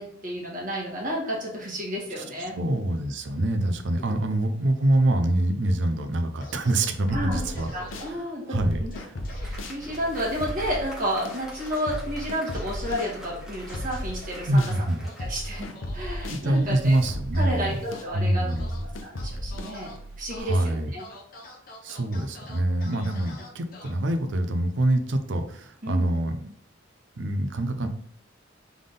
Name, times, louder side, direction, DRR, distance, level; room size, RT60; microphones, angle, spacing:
voice 1, 0.0-2.6 4.1-4.2 7.1-7.4 7.7-8.5 8.8-8.9 9.3-14.6 15.2-17.0 17.3-18.5 18.8-21.0 25.8-26.1, equal, 45° right, -3 dB, 1.5 m, -31 dB
voice 2, 2.6-7.7 8.5-8.8 14.5-15.0 16.3-17.7 18.1-18.7 20.3-21.1 21.8-26.5 27.2-27.9, right 1 dB, 65° right, 7 dB, 0.6 m, -25 dB
sound 1, 6.4-6.9 7.3-8.1 8.9-9.5 9.8-10.0 11.5-11.9 12.2-13.1 13.7-14.3 15.1-16.8 17.3-18.0 18.5-18.8 19.2-20.0 20.3-20.6 21.0-23.9, left 2 dB, 50° left, 1.0 m, -46 dB
sound 2, 7.1-8.1 8.5-14.8 15.2-20.4, left 1 dB, 90° left, 0.7 m, -36 dB
Applause, 8.8-16.2, equal, 5° right, 1.4 m, -46 dB
3.7 x 3.5 x 3.8 m, 0.62 s
head